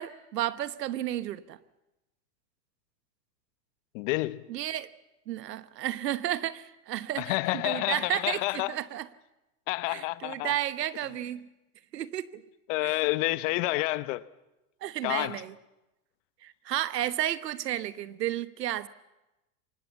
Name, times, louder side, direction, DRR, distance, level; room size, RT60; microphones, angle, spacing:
voice 1, 0.0-1.6 4.5-4.9 5.3-7.3 7.6-9.1 9.9-11.5 11.9-12.4 12.8-13.0 14.8-15.5 16.4-18.9, right 12 dB, 85° right, 1.2 m, -32 dB
voice 2, 3.9-4.5 7.2-8.7 9.7-10.5 12.7-14.2 15.0-15.4, left 20 dB, 50° left, 1.0 m, -29 dB
24.0 x 19.5 x 7.2 m
hypercardioid pair, 125°, 48 cm